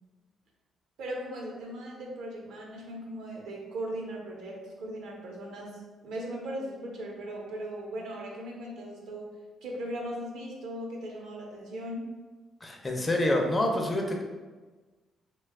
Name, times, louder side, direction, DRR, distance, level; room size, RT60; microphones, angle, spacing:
voice 1, 1.0-9.3 9.6-12.0, right 1 dB, 80° right, -1 dB, 0.7 m, -38 dB
voice 2, 12.6-14.2, left 1 dB, 25° left, 2 dB, 0.5 m, -27 dB
2.8 x 2.2 x 3.4 m, 1.3 s
cardioid pair, 90°, 0 cm